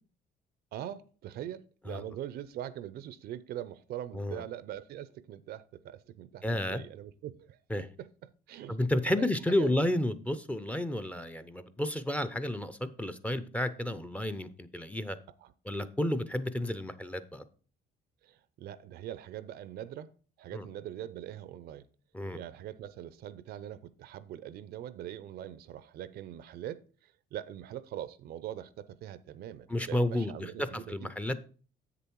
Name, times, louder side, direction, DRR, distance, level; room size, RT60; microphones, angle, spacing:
voice 1, 0.7-8.8 9.1-9.7 15.4-15.5 18.2-20.1 20.4-21.9 22.3-31.1, right 11 dB, 70° right, 0.6 m, -42 dB
voice 2, 6.4-6.8 7.7-7.9 8.7-15.2 15.7-17.4 20.5-20.7 22.1-22.4 29.7-31.4, left 1 dB, 10° left, 0.6 m, -31 dB
7.8 x 6.9 x 4.6 m
cardioid pair, 110°, 17 cm